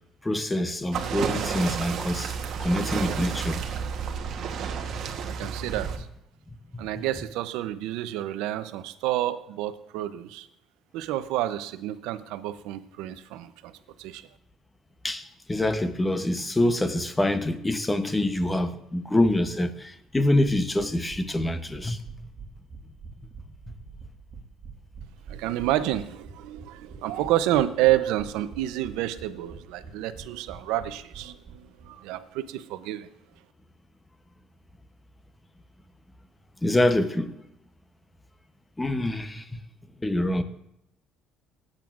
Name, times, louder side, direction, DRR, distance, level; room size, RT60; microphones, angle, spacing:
voice 1, 0.2-3.6 6.8-6.9 15.0-22.0 36.6-37.3 38.8-39.6 40.0-40.4, left 1 dB, 10° left, 0.8 m, -25 dB
sound 1, 0.9-6.0, right 6 dB, 55° right, 1.1 m, -31 dB
voice 2, 5.4-6.1 6.8-10.5 10.9-13.7 14.0-14.2 25.3-33.1, right 14 dB, 85° right, 0.6 m, -29 dB
sound 2, 20.8-31.9 32.1-32.2 32.5-32.6, right 4 dB, 40° right, 1.7 m, -45 dB
17.0 x 8.9 x 2.5 m
cardioid pair, 120°, 0 cm